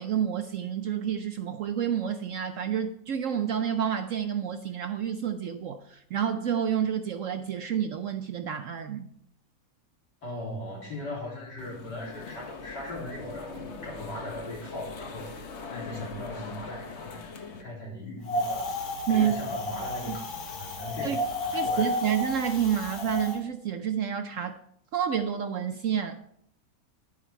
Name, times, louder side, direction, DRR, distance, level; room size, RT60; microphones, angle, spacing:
voice 1, 0.0-9.1 19.1-19.6 20.1-20.2 21.0-21.2 21.5-24.6 24.9-26.2, right 8 dB, 65° right, 0.8 m, -29 dB
voice 2, 10.2-21.9, left 1 dB, 80° left, 4.1 m, -39 dB
sound 1, 11.6-17.6, left 4 dB, 45° left, 1.2 m, -41 dB
Wind, 18.3-23.4, left 1 dB, 60° left, 1.8 m, -32 dB
11.0 x 8.8 x 4.4 m
omnidirectional pair, 1.8 m